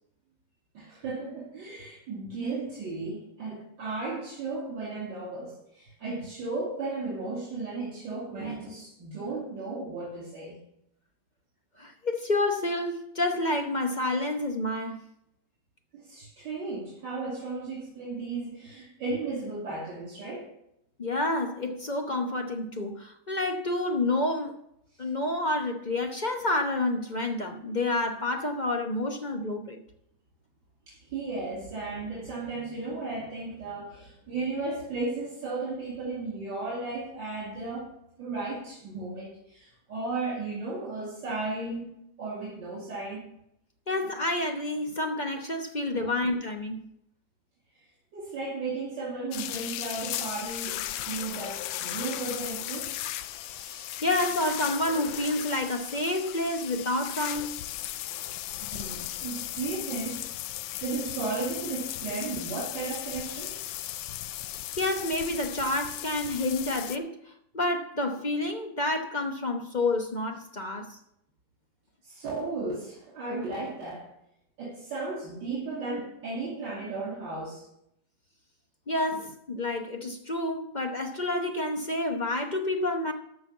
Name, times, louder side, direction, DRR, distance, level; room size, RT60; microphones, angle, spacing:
voice 1, 0.7-10.6 15.9-20.5 30.9-37.9 38.2-43.3 45.9-46.1 48.1-52.9 58.6-60.3 60.5-63.6 72.0-74.1 74.6-77.6, right 3 dB, 70° right, 3.3 m, -35 dB
voice 2, 11.8-15.0 21.0-24.6 25.0-29.8 43.9-46.8 53.5-57.6 64.8-71.0 78.9-83.1, left 2 dB, 35° left, 0.7 m, -29 dB
sound 1, 49.3-67.0, left 13 dB, 85° left, 1.4 m, -36 dB
13.5 x 5.4 x 7.2 m
omnidirectional pair, 2.1 m